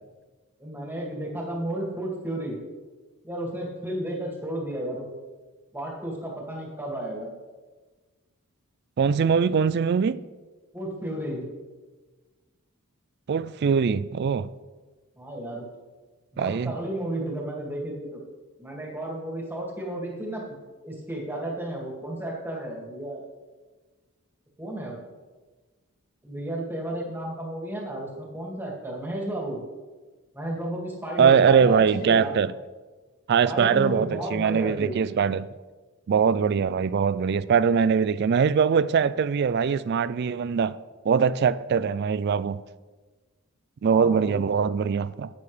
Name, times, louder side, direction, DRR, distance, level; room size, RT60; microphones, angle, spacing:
voice 1, 0.6-2.6 3.2-5.1 5.7-7.3 10.7-11.5 15.2-15.6 16.3-18.2 18.6-20.6 20.8-23.2 24.6-25.0 26.2-29.6 30.3-32.3 33.4-35.0 43.9-44.4, right 1 dB, 10° right, 2.1 m, -33 dB
voice 2, 9.0-10.2 13.3-14.5 16.4-16.8 31.2-32.5 33.3-35.5 36.1-40.8 41.1-42.6 43.8-45.3, right 6 dB, 50° right, 0.3 m, -22 dB
11.5 x 9.2 x 3.3 m
head